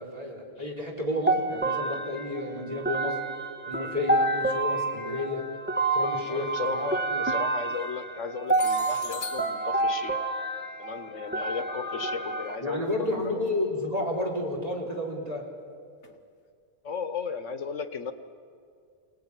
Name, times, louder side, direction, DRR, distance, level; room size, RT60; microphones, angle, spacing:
voice 1, 0.0-3.2 3.7-5.4 5.9-6.8 7.1-7.2 12.6-15.4, left 1 dB, 30° right, -1 dB, 4.4 m, -31 dB
sound 1, 1.3-12.6, right 2 dB, 10° right, 1.5 m, -29 dB
sound 2, 4.4-4.5 6.5-6.7 7.5-7.9 8.5-11.5 12.8-13.1 13.4-13.5 14.2-14.3 16.0-16.2, left 5 dB, 70° left, 1.9 m, -43 dB
voice 2, 6.3-10.2 10.8-13.4 16.8-18.1, left 5 dB, 85° left, 10 dB, 1.6 m, -35 dB
27.5 x 18.5 x 9.9 m, 2.2 s
omnidirectional pair, 1.2 m